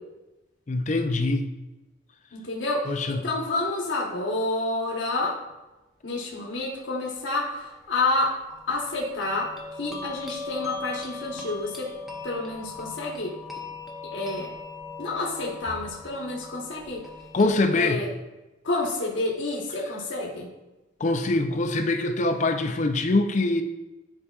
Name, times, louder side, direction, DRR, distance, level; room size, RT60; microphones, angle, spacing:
voice 1, 0.7-1.5 2.9-3.2 17.3-18.0 21.0-23.6, left 2 dB, 35° left, 7 dB, 0.5 m, -23 dB
voice 2, 2.3-5.4 6.0-8.3 8.7-9.5 9.8-11.9 12.2-13.3 14.1-14.5 15.0-17.0 17.7-18.1 18.6-20.5, left 2 dB, 60° left, -2 dB, 1.2 m, -29 dB
sound 1, 8.5-17.6, left 4 dB, ahead, 0.7 m, -39 dB
9.7 x 4.9 x 2.4 m, 1.0 s
head